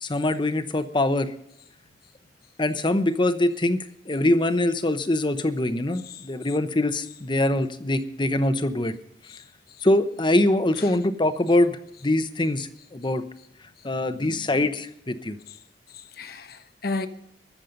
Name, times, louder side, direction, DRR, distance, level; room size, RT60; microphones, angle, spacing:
voice 1, 0.0-1.3 2.6-8.9 9.8-11.8 12.0-13.2 13.8-15.4, left 1 dB, 25° left, 0.9 m, -23 dB
voice 2, 15.9-17.1, left 3 dB, 60° left, 1.1 m, -34 dB
22.0 x 7.4 x 5.3 m
head